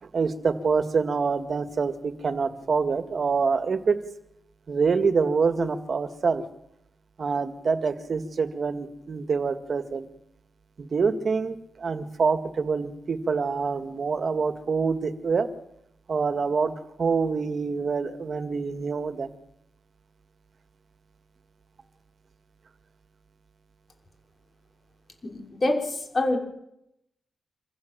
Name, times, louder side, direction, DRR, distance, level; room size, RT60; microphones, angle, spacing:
voice 1, 0.0-4.0 4.7-6.4 7.2-10.1 10.8-15.5 16.1-16.7 17.0-19.3, right 5 dB, 50° right, 9 dB, 2.1 m, -26 dB
voice 2, 25.2-26.4, left 2 dB, 35° left, 2 dB, 5.5 m, -26 dB
26.0 x 16.0 x 7.6 m, 0.80 s
cardioid pair, 90°, 0 cm